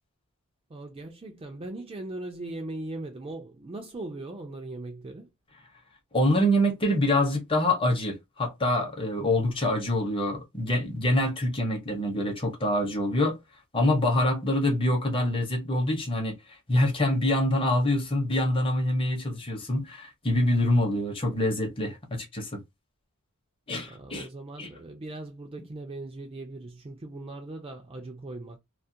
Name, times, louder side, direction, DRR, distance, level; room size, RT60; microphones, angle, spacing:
voice 1, 0.7-5.3 23.9-28.6, right 2 dB, 25° right, 0.4 m, -39 dB
voice 2, 6.1-13.4 13.7-16.4 16.7-22.6 23.7-24.3 24.6-24.7, left 1 dB, 25° left, 0.7 m, -25 dB
2.4 x 2.1 x 2.6 m
head